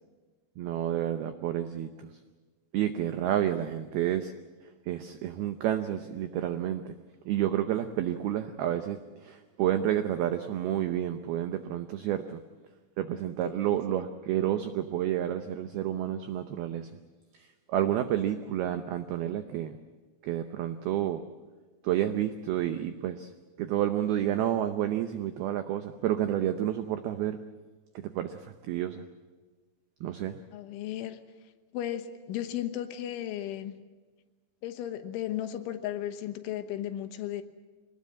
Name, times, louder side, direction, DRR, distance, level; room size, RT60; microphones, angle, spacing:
voice 1, 0.6-2.1 2.7-4.3 4.9-6.9 7.3-12.4 13.0-16.9 17.7-19.8 20.2-21.2 21.8-23.3 23.6-27.4 28.1-29.0 30.0-30.4, right 11 dB, 85° right, 8 dB, 2.2 m, -30 dB
voice 2, 30.5-31.2 31.7-33.8 34.6-37.4, left 11 dB, 80° left, 8 dB, 3.5 m, -35 dB
24.5 x 19.5 x 7.5 m, 1.3 s
omnidirectional pair, 5.7 m